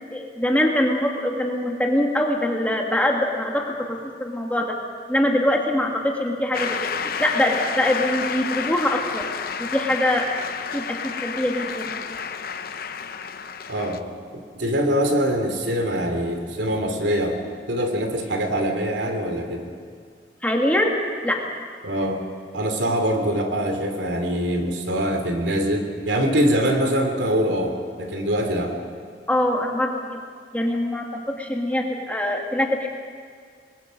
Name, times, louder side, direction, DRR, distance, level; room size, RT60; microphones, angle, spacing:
voice 1, 0.1-4.7 5.1-9.3 9.6-10.3 10.7-12.1 20.4-20.9 21.2-21.4 29.3-30.2 30.5-32.9, left 1 dB, 10° left, 1 dB, 2.0 m, -23 dB
Shout / Cheering / Applause, 6.5-14.0, left 6 dB, 55° left, 0.8 m, -30 dB
voice 2, 13.7-14.0 14.5-17.4 17.7-19.7 21.8-22.2 22.5-28.8, equal, 85° right, 4 dB, 2.8 m, -23 dB
26.5 x 20.5 x 5.3 m, 2.1 s
head